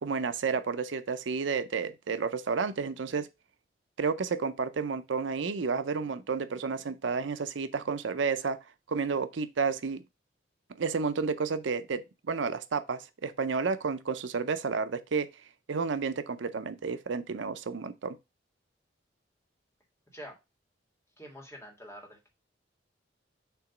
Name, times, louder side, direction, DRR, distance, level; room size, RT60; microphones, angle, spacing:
voice 1, 0.0-3.3 4.0-8.6 8.9-10.0 10.8-15.3 15.7-18.2, right 5 dB, 80° right, 0.5 m, -31 dB
voice 2, 21.2-22.3, equal, 15° left, 1.7 m, -46 dB
6.8 x 2.9 x 5.8 m
head